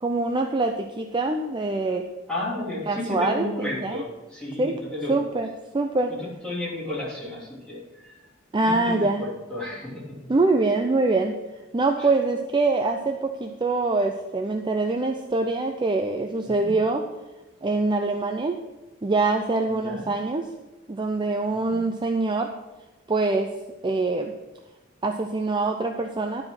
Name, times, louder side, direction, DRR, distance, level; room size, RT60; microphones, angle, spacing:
voice 1, 0.0-2.1 2.9-4.0 4.6-4.8 5.1-6.1 8.5-9.3 10.3-11.3 11.7-17.0 17.6-18.6 19.0-20.5 20.9-22.5 23.1-23.5 23.8-24.3 25.0-26.4, right 3 dB, 25° right, 4 dB, 0.5 m, -24 dB
voice 2, 2.3-5.1 6.4-8.1 8.6-10.2 16.4-16.7 19.7-20.1 21.7-21.8, left 1 dB, 5° left, -7 dB, 3.2 m, -33 dB
11.5 x 4.9 x 6.0 m, 1.1 s
head